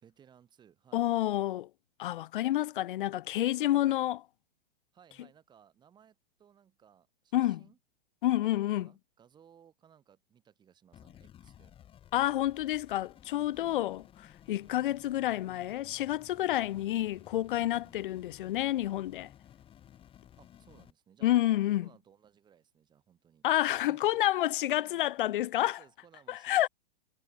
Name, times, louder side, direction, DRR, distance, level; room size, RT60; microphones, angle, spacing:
voice 1, 0.0-1.1 3.6-4.1 4.9-7.8 8.3-11.7 13.5-13.9 16.7-16.9 17.8-18.1 20.4-21.3 21.8-23.5 23.8-24.2 24.7-25.1 25.8-26.7, right 8 dB, 15° right, 3.9 m, -61 dB
voice 2, 0.9-1.7 2.0-4.2 7.3-7.6 8.2-8.9 12.1-14.0 14.5-19.3 21.2-21.9 23.4-25.8 26.3-26.7, left 14 dB, 55° left, 0.8 m, -29 dB
sound 1, 10.9-20.9, left 10 dB, 15° left, 7.3 m, -56 dB
hypercardioid pair, 165°, 31 cm